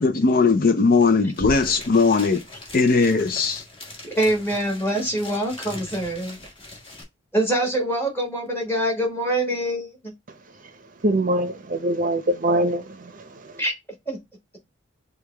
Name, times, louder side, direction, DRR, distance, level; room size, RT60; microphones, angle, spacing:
voice 1, 0.0-2.4 2.7-3.6, left 4 dB, 50° left, 0.5 m, -19 dB
sound 1, 1.0-1.1 1.3-7.0, left 1 dB, 30° left, 1.6 m, -39 dB
voice 2, 4.0-6.4 7.3-10.0 13.6-13.7 14.1-14.2, right 1 dB, 10° left, 1.6 m, -24 dB
voice 3, 11.0-13.6, right 1 dB, 45° right, 0.7 m, -24 dB
6.4 x 2.3 x 3.3 m
head